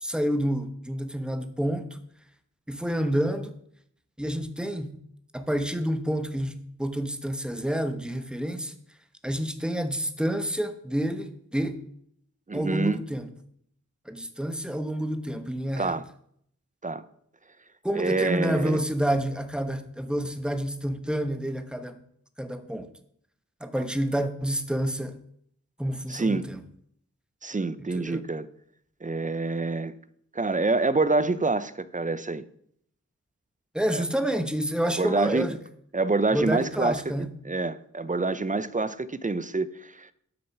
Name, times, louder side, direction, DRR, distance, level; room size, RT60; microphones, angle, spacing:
voice 1, 0.0-1.9 2.7-3.5 4.2-4.9 5.3-6.5 6.8-8.7 9.2-11.8 12.5-13.3 14.1-15.9 17.8-22.0 22.4-22.9 23.6-25.2 25.8-26.6 27.9-28.2 33.7-35.6 36.3-37.3, equal, 5° right, 1.1 m, -28 dB
voice 2, 12.5-13.0 15.8-16.0 16.8-17.0 17.9-18.8 26.1-26.4 27.4-28.5 29.0-29.9 30.3-32.4 33.9-34.0 34.8-35.5 35.9-37.0 37.4-40.1, right 3 dB, 25° right, 0.5 m, -26 dB
12.5 x 6.4 x 5.9 m
wide cardioid pair, 85°, 30 cm